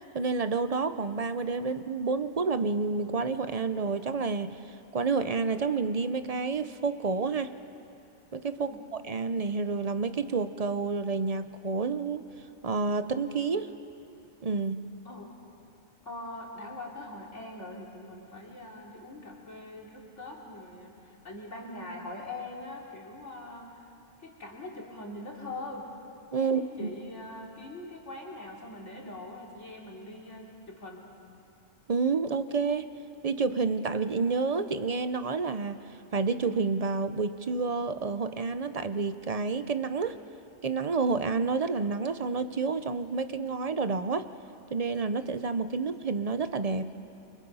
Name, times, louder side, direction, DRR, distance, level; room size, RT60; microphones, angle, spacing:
voice 1, 0.1-4.6 4.9-7.5 8.3-8.8 9.0-12.3 12.6-13.7 14.4-14.9 26.3-27.0 31.9-32.9 33.2-35.8 36.1-40.2 40.6-44.3 44.7-46.9, right 4 dB, 40° right, 11 dB, 0.5 m, -29 dB
voice 2, 15.1-15.4 16.1-23.8 24.2-25.8 26.3-31.1, left 2 dB, 60° left, -2 dB, 3.4 m, -42 dB
29.0 x 24.5 x 5.5 m, 2.7 s
omnidirectional pair, 1.4 m